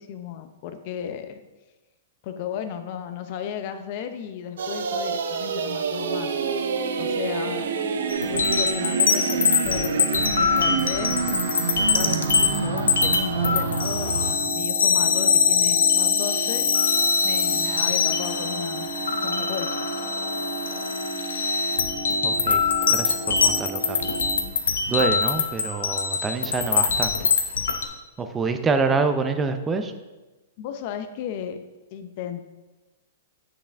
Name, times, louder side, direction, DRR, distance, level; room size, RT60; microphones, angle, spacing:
voice 1, 0.0-1.4 2.2-6.4 7.0-11.1 11.9-16.7 17.2-18.9 19.2-19.8 30.6-31.6 31.9-32.5, left 8 dB, 50° left, 9 dB, 0.7 m, -34 dB
sound 1, 4.6-14.3, right 6 dB, 75° right, 0.6 m, -28 dB
sound 2, 6.1-24.4, right 2 dB, 20° left, 2.6 m, -34 dB
sound 3, 8.1-27.8, left 5 dB, 85° left, 0.8 m, -23 dB
voice 2, 22.2-22.6 22.9-24.2 24.9-27.3 28.2-29.9, right 4 dB, 15° right, 8 dB, 0.6 m, -26 dB
7.7 x 6.4 x 3.5 m, 1.1 s
hypercardioid pair, 130°, 0 cm